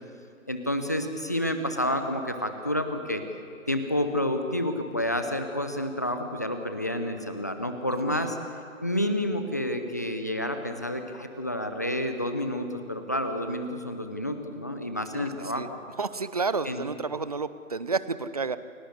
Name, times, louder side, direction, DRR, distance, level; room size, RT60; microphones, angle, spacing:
voice 1, 0.5-3.2 3.7-8.4 8.8-15.8 16.6-16.8, left 1 dB, 15° left, 6 dB, 0.6 m, -29 dB
voice 2, 15.1-15.7 16.0-18.6, right 4 dB, 30° right, 14 dB, 0.6 m, -31 dB
29.0 x 16.5 x 8.2 m, 2.5 s
figure-of-eight pair, 150°, 41 cm